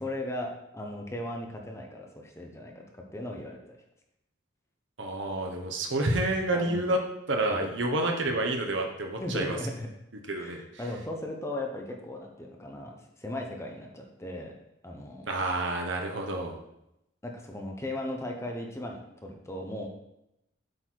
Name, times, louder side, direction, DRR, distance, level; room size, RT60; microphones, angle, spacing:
voice 1, 0.0-3.8 6.0-6.2 6.5-6.9 7.5-7.6 9.2-9.9 10.4-14.5 14.8-15.3 17.2-19.9, left 1 dB, 15° left, 1 dB, 0.9 m, -37 dB
voice 2, 5.0-7.0 7.3-9.6 10.3-10.6 15.3-16.6, right 2 dB, 70° right, 2 dB, 1.1 m, -29 dB
7.9 x 4.3 x 4.6 m, 0.85 s
head